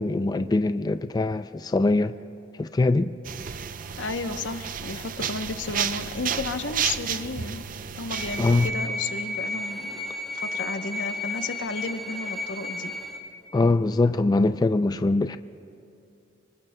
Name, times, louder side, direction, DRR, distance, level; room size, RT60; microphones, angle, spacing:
voice 1, 0.0-2.1 2.6-3.1 8.4-8.7 13.5-15.4, left 2 dB, 20° left, 0.3 m, -22 dB
sound 1, 3.2-8.7, right 8 dB, 50° right, 0.5 m, -32 dB
voice 2, 4.0-7.6 8.0-10.0 10.3-12.9, left 3 dB, 90° left, 0.8 m, -33 dB
sound 2, 8.1-13.2, left 2 dB, ahead, 1.8 m, -33 dB
26.5 x 24.5 x 2.2 m
head